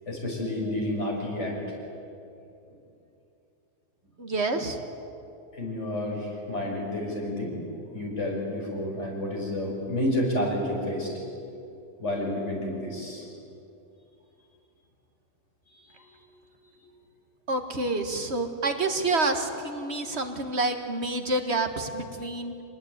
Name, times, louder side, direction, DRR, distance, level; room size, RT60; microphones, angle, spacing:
voice 1, 0.1-1.6 5.5-7.6 7.9-11.1 12.0-13.2 15.7-16.1, left 1 dB, 75° left, -2 dB, 6.4 m, -30 dB
voice 2, 4.2-4.8 17.5-22.5, right 2 dB, 65° right, 6 dB, 2.1 m, -28 dB
25.5 x 19.5 x 9.6 m, 2.7 s
omnidirectional pair, 1.2 m